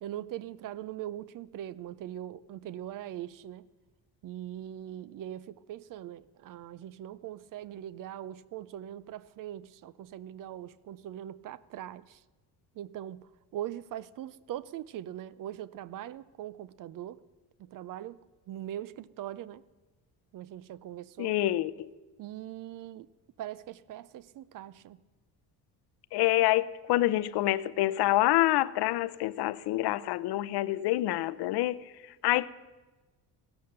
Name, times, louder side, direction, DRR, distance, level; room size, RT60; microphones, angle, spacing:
voice 1, 0.0-3.7 4.2-12.2 12.7-17.2 17.6-18.2 18.5-19.6 20.3-21.3 22.2-23.1 23.4-25.0, right 12 dB, 55° right, 0.5 m, -41 dB
voice 2, 21.2-21.9 26.1-31.8 32.2-32.5, left 16 dB, 75° left, 0.7 m, -27 dB
16.0 x 12.0 x 6.6 m
cardioid pair, 150°, 40 cm